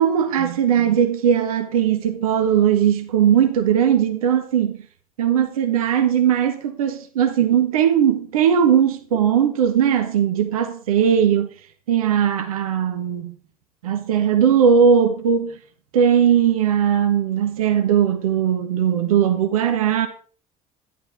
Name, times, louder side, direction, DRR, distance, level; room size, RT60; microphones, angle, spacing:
voice 1, 0.0-4.8 5.2-11.5 11.9-13.3 13.8-15.5 15.9-20.1, right 8 dB, 75° right, 1.5 m, -19 dB
13.0 x 11.5 x 3.9 m
figure-of-eight pair, 60°, 19 cm